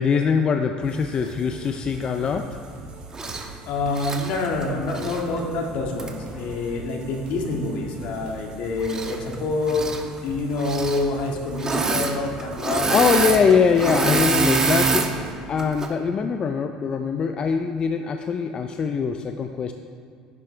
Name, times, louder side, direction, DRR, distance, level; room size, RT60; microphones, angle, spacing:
voice 1, 0.0-2.5 12.9-15.1 15.5-19.7, left 6 dB, 40° left, 6 dB, 0.5 m, -22 dB
sound 1, 0.8-15.3, right 3 dB, 55° right, 2.1 m, -42 dB
Engine / Mechanisms, 3.1-3.5 3.9-5.2 6.0-6.1 8.8-9.4 9.6-10.0 10.6-11.0 11.6-12.1 12.4-15.1 15.6-15.9, right 3 dB, 25° right, 1.2 m, -24 dB
voice 2, 3.6-9.9 10.2-13.3 13.9-14.1, left 3 dB, 70° left, 1 dB, 1.8 m, -27 dB
10.5 x 10.0 x 3.3 m, 2.4 s
supercardioid pair, 85°, 2 cm